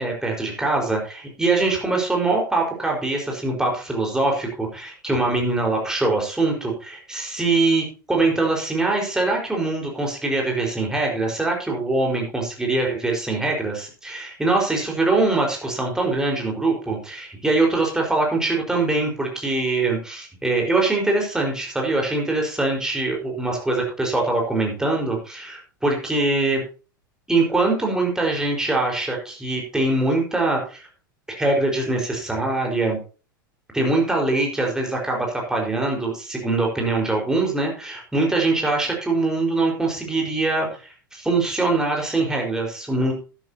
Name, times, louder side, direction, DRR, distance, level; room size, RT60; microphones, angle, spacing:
voice 1, 0.0-26.6 27.3-30.9 31.3-33.0 33.7-43.1, right 2 dB, 5° right, 0 dB, 4.8 m, -23 dB
12.0 x 12.0 x 2.9 m, 0.35 s
figure-of-eight pair, 85°, 12 cm